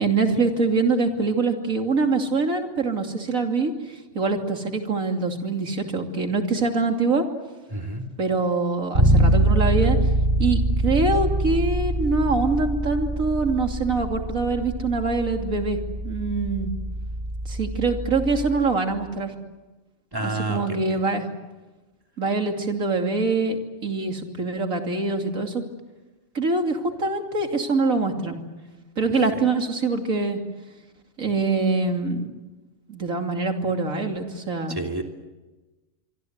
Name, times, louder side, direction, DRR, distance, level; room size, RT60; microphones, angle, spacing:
voice 1, 0.0-7.2 8.2-10.0 10.4-15.8 16.0-16.7 17.5-19.3 20.2-21.3 22.2-25.6 26.3-28.4 29.0-30.4 31.2-32.3 32.9-34.8, right 3 dB, 85° right, 4 dB, 3.2 m, -24 dB
voice 2, 7.7-8.0 20.1-20.8 34.7-35.0, right 2 dB, 15° right, 2 dB, 3.0 m, -29 dB
Bass guitar, 8.9-18.8, right 1 dB, 40° right, 8.0 m, -24 dB
25.5 x 24.5 x 8.1 m, 1.2 s
omnidirectional pair, 1.4 m